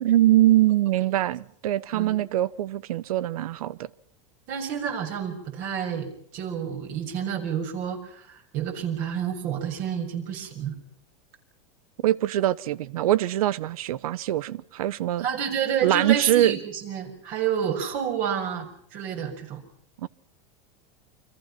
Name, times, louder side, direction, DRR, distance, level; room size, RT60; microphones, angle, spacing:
voice 1, 0.0-3.9 12.0-15.3 15.8-16.5 20.0-20.1, right 14 dB, 85° right, 1.0 m, -23 dB
voice 2, 4.5-10.7 15.2-19.6, right 8 dB, 50° right, 6.7 m, -29 dB
29.5 x 25.0 x 5.9 m
supercardioid pair, 135°, 18 cm